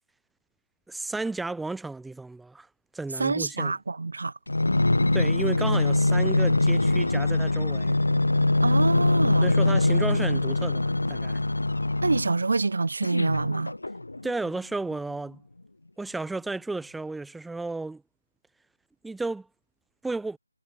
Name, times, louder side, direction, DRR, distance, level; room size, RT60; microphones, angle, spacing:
voice 1, 0.9-2.7 2.9-3.7 5.1-8.0 9.4-11.4 14.2-15.4 16.0-18.0 19.0-19.5 20.0-20.4, right 3 dB, ahead, 0.5 m, -33 dB
voice 2, 3.2-4.3 8.6-9.5 12.0-13.7, right 3 dB, 65° right, 0.5 m, -26 dB
sound 1, 4.5-12.4 13.0-14.3 14.9-15.0, left 2 dB, 85° left, 0.9 m, -23 dB
figure-of-eight pair, 160°, 0 cm